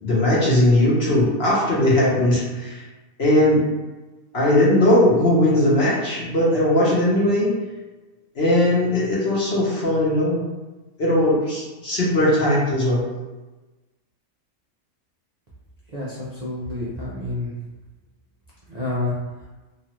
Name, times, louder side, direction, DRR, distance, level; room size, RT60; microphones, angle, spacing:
voice 1, 0.0-2.8 3.2-3.6 4.3-7.5 8.4-10.4 11.0-13.0, left 1 dB, 50° left, -6 dB, 1.0 m, -19 dB
voice 2, 15.9-17.5 18.7-19.5, left 2 dB, 75° right, -7 dB, 0.3 m, -29 dB
2.9 x 2.4 x 2.9 m, 1.2 s
omnidirectional pair, 1.5 m